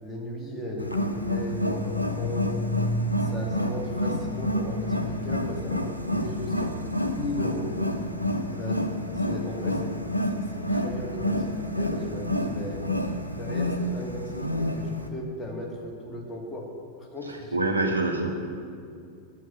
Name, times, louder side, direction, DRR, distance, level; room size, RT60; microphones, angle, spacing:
voice 1, 0.0-2.5 3.2-7.7 8.5-8.8 9.1-9.9 10.3-12.9 13.3-16.7 17.0-18.0, equal, 10° left, -3 dB, 2.3 m, -36 dB
Wild animals, 0.8-15.1, left 1 dB, 85° left, 0.8 m, -28 dB
voice 2, 17.5-18.3, right 2 dB, 85° right, 0 dB, 1.5 m, -25 dB
9.1 x 7.3 x 7.3 m, 2.3 s
figure-of-eight pair, 90°, 0 cm